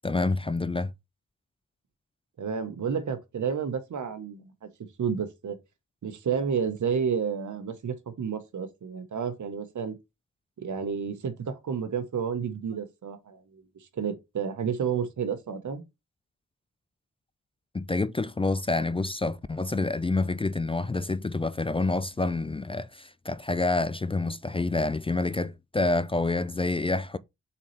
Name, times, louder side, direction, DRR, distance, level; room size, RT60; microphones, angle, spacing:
voice 1, 0.0-0.9 17.7-27.2, left 2 dB, 20° left, 0.4 m, -28 dB
voice 2, 2.4-4.5 5.0-5.6 6.0-10.0 10.6-13.6 13.9-15.8, right 6 dB, 80° right, 1.4 m, -30 dB
7.4 x 4.1 x 3.3 m
wide cardioid pair, 95°, 30 cm